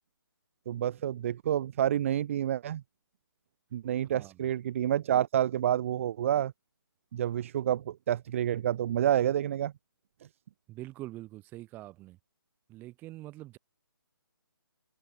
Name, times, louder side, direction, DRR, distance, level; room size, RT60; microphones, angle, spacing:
voice 1, 0.7-2.8 3.7-6.5 7.1-9.7, right 11 dB, 35° right, 1.3 m, -28 dB
voice 2, 4.1-4.4 10.7-12.2 12.7-13.6, right 17 dB, 15° right, 2.3 m, -44 dB
figure-of-eight pair, 145°, 12 cm